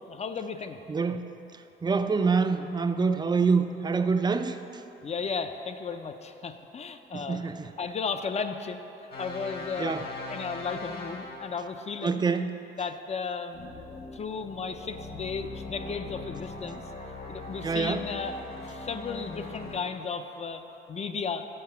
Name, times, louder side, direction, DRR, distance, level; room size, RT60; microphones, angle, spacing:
voice 1, 0.1-0.8 5.0-7.5 7.8-8.8 9.2-12.3 12.8-16.8 17.3-21.5, left 5 dB, 35° left, 8 dB, 0.5 m, -35 dB
voice 2, 0.9-1.3 1.8-4.6 7.1-7.7 9.8-10.0 12.0-12.6 17.6-18.0, right 5 dB, 20° right, 9 dB, 0.4 m, -26 dB
sound 1, 9.1-11.8 13.5-19.8, left 2 dB, 50° left, 1.4 m, -40 dB
6.6 x 4.9 x 6.7 m, 3.0 s
cardioid pair, 90°, 20 cm